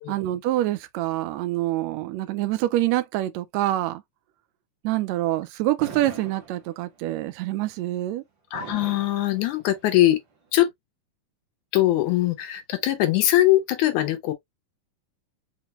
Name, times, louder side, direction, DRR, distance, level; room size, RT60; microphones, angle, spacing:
voice 1, 0.1-4.0 4.8-8.2, right 15 dB, 80° right, 1.6 m, -26 dB
Fireworks, 5.8-7.1 8.5-10.1, right 5 dB, 60° right, 1.3 m, -42 dB
voice 2, 8.5-10.2 10.5-10.7 11.7-14.3, left 14 dB, 75° left, 2.1 m, -21 dB
5.8 x 2.1 x 2.9 m
omnidirectional pair, 3.6 m